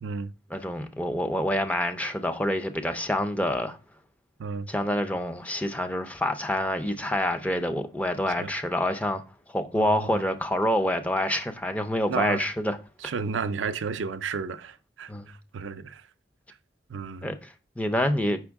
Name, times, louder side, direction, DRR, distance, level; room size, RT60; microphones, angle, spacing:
voice 1, 0.0-0.3 4.4-4.7 8.4-8.5 9.7-10.3 12.1-12.4 13.0-16.1 16.9-17.3, right 5 dB, 80° right, 0.5 m, -32 dB
voice 2, 0.5-3.8 4.7-9.2 9.5-12.8 15.1-15.3 17.2-18.4, left 1 dB, 10° left, 0.5 m, -27 dB
6.2 x 5.2 x 3.5 m
head